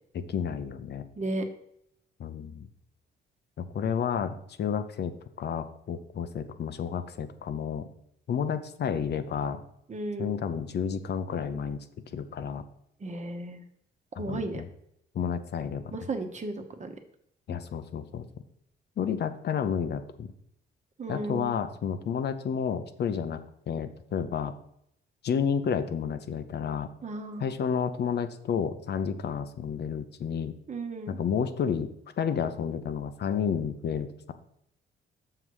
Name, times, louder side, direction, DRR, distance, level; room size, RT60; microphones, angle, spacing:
voice 1, 0.1-1.1 2.2-2.7 3.6-5.1 5.4-7.9 8.3-9.6 10.2-11.8 12.1-12.6 14.2-14.7 15.1-15.8 17.5-18.2 19.0-20.3 21.1-23.4 23.7-24.5 25.2-26.9 27.4-30.5 31.1-31.9 32.2-34.3, left 7 dB, 55° left, 9 dB, 0.7 m, -31 dB
voice 2, 9.9-10.4 13.0-13.6 14.2-14.6 15.9-16.9 21.0-21.5 27.0-27.5 30.7-31.2, right 2 dB, 35° right, 6 dB, 1.1 m, -34 dB
6.7 x 5.7 x 4.8 m, 0.73 s
cardioid pair, 90°, 20 cm